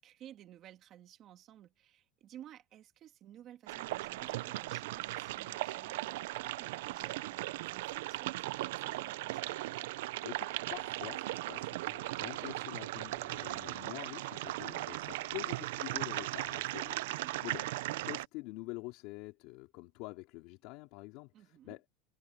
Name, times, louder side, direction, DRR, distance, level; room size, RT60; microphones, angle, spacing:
voice 1, 0.0-9.5 17.0-17.4 21.3-21.8, right 11 dB, 30° right, 2.2 m, -56 dB
sound 1, 3.7-18.3, right 18 dB, 75° right, 0.5 m, -38 dB
voice 2, 10.2-17.7 18.1-21.8, left 22 dB, 50° left, 4.0 m, -46 dB
supercardioid pair, 180°, 0 cm